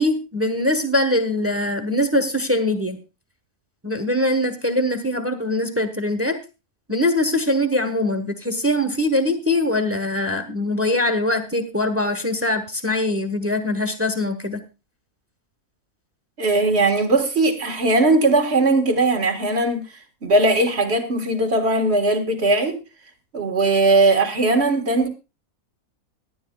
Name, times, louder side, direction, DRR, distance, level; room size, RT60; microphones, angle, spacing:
voice 1, 0.0-3.0 3.8-6.4 6.9-14.6, left 1 dB, 10° right, 1.1 m, -22 dB
voice 2, 16.4-19.8 20.2-22.8 23.3-25.1, right 2 dB, 45° right, 1.9 m, -19 dB
18.5 x 11.5 x 2.3 m
omnidirectional pair, 1.6 m